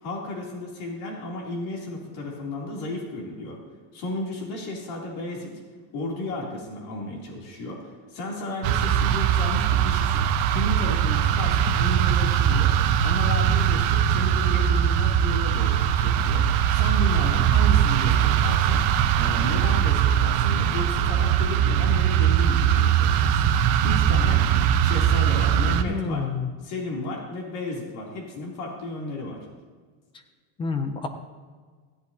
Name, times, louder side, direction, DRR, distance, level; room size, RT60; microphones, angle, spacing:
voice 1, 0.0-3.6 3.9-5.5 5.9-12.7 13.0-18.8 19.2-23.5 23.8-24.5 24.8-26.2 26.6-29.4, left 2 dB, 55° left, -2 dB, 3.0 m, -33 dB
sound 1, 8.6-25.8, right 9 dB, 55° right, 0.8 m, -21 dB
voice 2, 25.8-26.5 30.6-31.1, left 5 dB, 15° left, 8 dB, 0.3 m, -28 dB
16.0 x 10.5 x 2.8 m, 1.5 s
cardioid pair, 160°, 44 cm